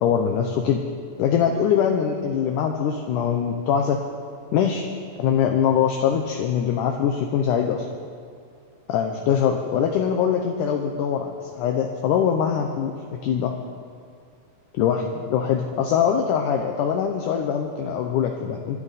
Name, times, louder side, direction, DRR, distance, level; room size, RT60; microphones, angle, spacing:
voice 1, 0.0-0.8 1.2-4.0 4.5-4.9 5.2-7.9 8.9-13.5 14.7-18.8, left 8 dB, 75° left, 3 dB, 2.1 m, -23 dB
25.0 x 10.0 x 4.1 m, 2.4 s
omnidirectional pair, 4.1 m